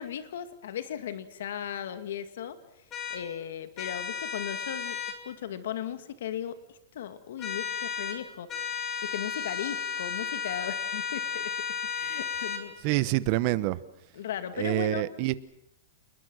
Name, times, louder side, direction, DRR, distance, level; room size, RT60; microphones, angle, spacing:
voice 1, 0.0-2.6 3.1-8.5 9.0-11.6 11.9-13.1 14.1-15.1, left 9 dB, 75° left, 10 dB, 2.2 m, -37 dB
sound 1, 2.9-3.2 3.8-5.2 7.4-8.2 8.5-12.6, left 6 dB, 20° left, 2.8 m, -33 dB
voice 2, 12.8-13.8 14.6-15.3, right 18 dB, 40° right, 17 dB, 0.9 m, -26 dB
28.5 x 21.0 x 6.4 m, 0.79 s
supercardioid pair, 165°, 0 cm